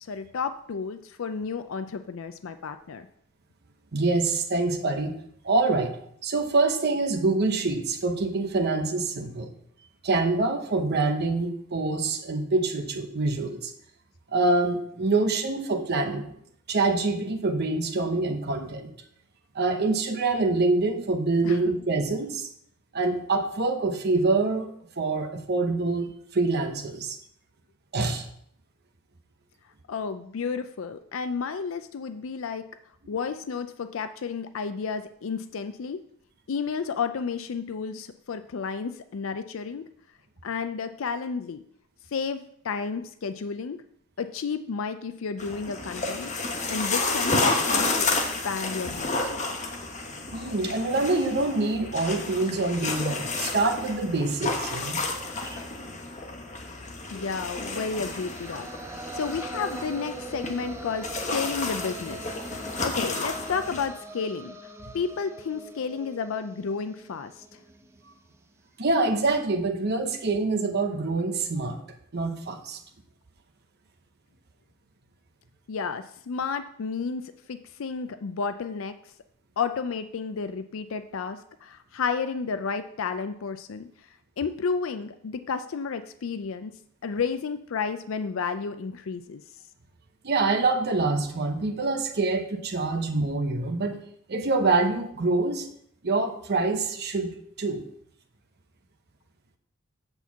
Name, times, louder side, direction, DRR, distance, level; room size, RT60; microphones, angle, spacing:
voice 1, 0.0-3.1 21.4-21.7 29.9-32.6 33.1-36.0 36.5-39.9 40.4-41.6 42.1-43.8 44.2-46.3 46.7-48.2 48.4-49.4 57.1-64.6 64.9-67.6 75.7-79.1 79.6-84.1 84.4-86.7 87.0-89.4, left 5 dB, 75° left, 10 dB, 0.4 m, -32 dB
voice 2, 3.9-5.2 5.4-9.5 10.0-13.7 14.3-16.3 16.7-18.9 19.5-22.5 22.9-27.2 27.9-28.3 50.3-55.0 55.5-55.6 68.8-71.8 72.1-72.8 90.2-94.0 94.3-95.7 96.0-97.8, right 3 dB, 55° right, 4 dB, 0.9 m, -25 dB
sound 1, 45.4-63.9, left 3 dB, 35° left, 1.1 m, -31 dB
sound 2, 58.0-68.1, right 2 dB, 15° right, 0.5 m, -42 dB
8.0 x 4.4 x 7.0 m, 0.68 s
head